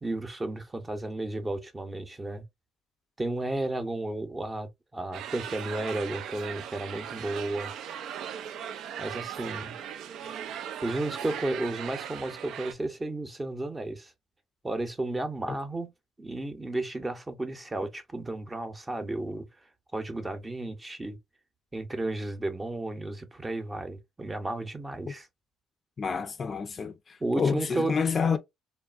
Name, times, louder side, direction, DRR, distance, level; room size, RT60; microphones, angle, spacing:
voice 1, 0.0-2.4 3.2-7.7 9.0-9.7 10.8-14.1 14.6-15.9 16.2-19.5 19.9-21.2 21.7-25.3 27.2-27.9, right 2 dB, 20° right, 0.8 m, -33 dB
sound 1, 5.1-12.7, right 9 dB, 65° right, 0.3 m, -38 dB
voice 2, 26.0-28.4, left 5 dB, 40° left, 0.4 m, -28 dB
3.2 x 2.3 x 2.3 m
hypercardioid pair, 60°, 0 cm